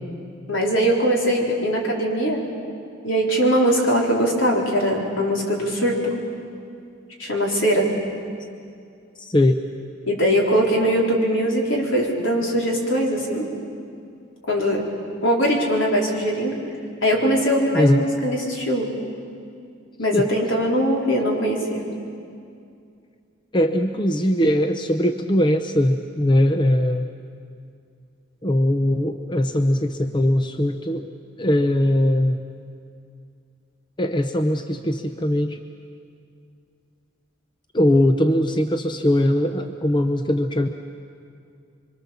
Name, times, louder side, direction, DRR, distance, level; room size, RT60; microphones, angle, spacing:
voice 1, 0.5-2.4 3.0-6.1 7.2-7.9 10.1-13.5 14.5-14.8 15.2-16.6 17.0-18.9 20.0-21.8, equal, 70° left, -1 dB, 4.2 m, -21 dB
voice 2, 9.2-9.6 17.7-18.1 20.1-20.3 21.2-21.3 23.5-27.1 28.4-31.1 31.4-32.4 34.0-35.6 37.7-40.7, left 1 dB, 25° left, 7 dB, 0.7 m, -20 dB
25.5 x 24.5 x 7.1 m, 2.4 s
head